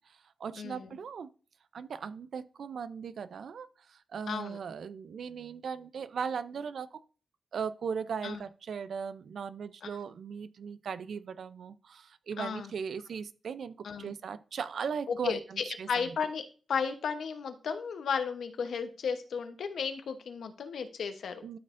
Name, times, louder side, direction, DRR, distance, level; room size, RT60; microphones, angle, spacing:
voice 1, 0.1-1.3 1.7-7.0 7.5-16.2 21.4-21.6, right 6 dB, 75° right, 0.4 m, -38 dB
voice 2, 0.6-1.0 4.3-4.6 8.2-8.4 9.8-9.9 12.4-12.7 13.8-14.1 15.1-21.4, left 6 dB, 85° left, 0.9 m, -34 dB
12.0 x 5.5 x 2.5 m
cardioid pair, 90°, 0 cm